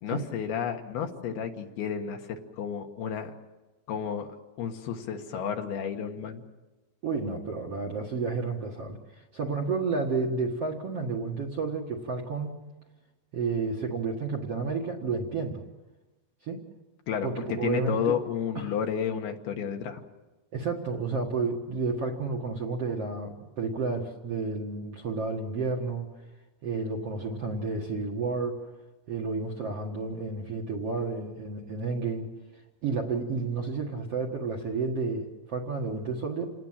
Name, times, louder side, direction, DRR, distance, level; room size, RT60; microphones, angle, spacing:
voice 1, 0.0-3.3 3.9-4.3 4.6-6.4 17.1-20.0, left 7 dB, 70° left, 4 dB, 3.3 m, -31 dB
voice 2, 7.0-12.5 13.3-15.6 16.4-16.6 17.2-18.2 18.6-18.8 20.5-26.1 26.6-28.7 29.1-32.3 32.8-36.5, right 4 dB, 50° right, 0 dB, 1.9 m, -31 dB
28.5 x 19.0 x 7.5 m, 1.1 s
omnidirectional pair, 5.0 m